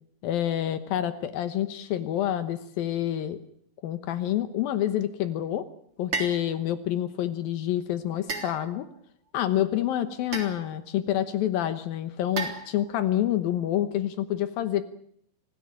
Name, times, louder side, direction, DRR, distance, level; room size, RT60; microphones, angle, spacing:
voice 1, 0.2-3.4 3.8-5.7 6.0-8.9 9.3-14.8, left 12 dB, 80° left, 12 dB, 2.9 m, -28 dB
sound 1, 6.1-6.5 8.3-9.0 10.3-10.8 12.4-13.0, right 4 dB, 40° right, 4.3 m, -34 dB
25.5 x 17.0 x 8.8 m, 0.69 s
omnidirectional pair, 4.2 m